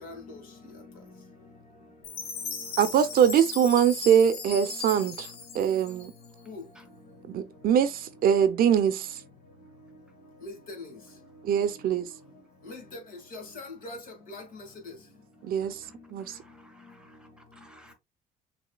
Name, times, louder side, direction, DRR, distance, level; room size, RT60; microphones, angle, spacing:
voice 1, 0.0-0.4 6.5-6.6 10.4-10.8 12.7-13.0 13.3-14.0 14.3-14.9, left 2 dB, 55° left, 2.1 m, -41 dB
Chime, 2.0-6.4, left 6 dB, 75° left, 1.2 m, -38 dB
voice 2, 2.8-5.3 5.5-6.1 7.3-9.2 11.4-12.1 15.4-15.8 16.1-16.4, right 8 dB, 60° right, 0.6 m, -23 dB
voice 3, 15.8-17.9, equal, 5° right, 1.2 m, -58 dB
6.3 x 2.8 x 2.3 m
cardioid pair, 110°, 17 cm